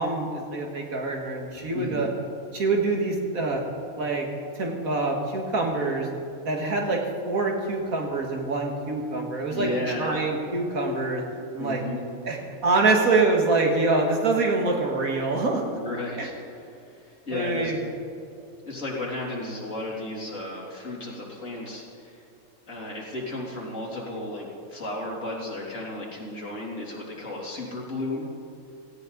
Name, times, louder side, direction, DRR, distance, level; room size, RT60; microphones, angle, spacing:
voice 1, 0.0-2.1 2.5-3.6 4.0-4.3 4.5-6.1 6.5-9.7 10.0-11.2 11.5-11.8 12.2-12.4 12.6-15.6 16.2-16.3 17.3-17.8, right 3 dB, 80° right, 0 dB, 2.6 m, -25 dB
voice 2, 1.7-2.1 9.5-10.2 11.6-12.0 15.7-17.7 18.6-22.2 22.7-28.3, left 2 dB, 65° left, -3 dB, 3.6 m, -34 dB
17.5 x 17.0 x 4.0 m, 2.6 s
omnidirectional pair, 1.5 m